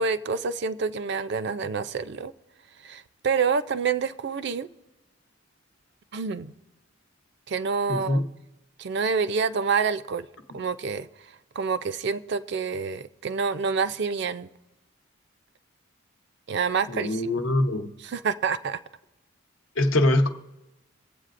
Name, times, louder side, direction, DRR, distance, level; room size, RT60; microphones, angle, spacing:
voice 1, 0.0-2.3 2.8-4.7 6.1-6.5 7.5-8.2 8.8-10.3 10.5-11.1 11.6-14.5 16.5-17.2 18.0-18.8, right 5 dB, 60° right, 0.4 m, -27 dB
voice 2, 7.9-8.3 16.9-17.9 19.8-20.3, left 1 dB, 80° left, 0.9 m, -23 dB
23.0 x 8.0 x 2.5 m
head